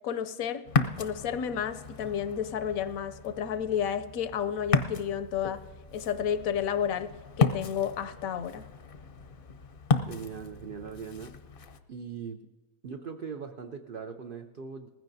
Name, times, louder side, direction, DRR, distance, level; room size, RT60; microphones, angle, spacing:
voice 1, 0.0-0.6 1.0-5.6 5.9-7.1 7.4-8.6, left 8 dB, 70° left, 12 dB, 1.0 m, -31 dB
Ocean, 0.7-11.8, left 5 dB, 50° left, 0.7 m, -33 dB
voice 2, 10.1-11.4 11.9-12.5 12.8-14.9, right 6 dB, 80° right, 6 dB, 0.4 m, -40 dB
20.0 x 15.0 x 2.7 m, 1.3 s
omnidirectional pair, 1.6 m